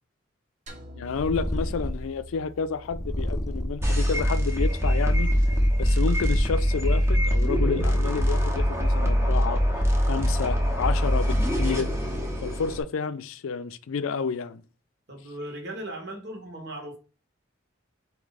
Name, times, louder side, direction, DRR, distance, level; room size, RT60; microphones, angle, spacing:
sound 1, 0.7-5.0, left 1 dB, 35° right, 1.0 m, -47 dB
voice 1, 1.0-5.3 5.8-9.6 10.1-11.9 12.4-14.6, left 5 dB, 90° left, 0.4 m, -30 dB
Purr, 1.1-2.2 2.8-3.9 4.6-6.7, left 1 dB, 15° left, 0.5 m, -32 dB
sound 2, 3.8-12.8, equal, 15° right, 0.8 m, -23 dB
voice 2, 15.1-17.0, right 1 dB, 55° right, 1.4 m, -37 dB
4.7 x 2.8 x 4.0 m
head